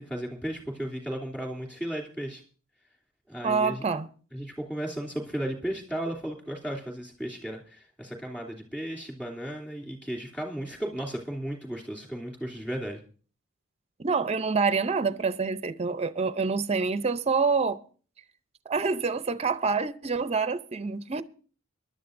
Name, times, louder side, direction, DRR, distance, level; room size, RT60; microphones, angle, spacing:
voice 1, 0.0-2.4 3.3-3.8 4.3-13.0, right 1 dB, 5° left, 2.9 m, -35 dB
voice 2, 3.4-4.1 14.0-17.8 18.7-21.2, right 4 dB, 30° right, 0.6 m, -27 dB
23.0 x 11.5 x 2.6 m
head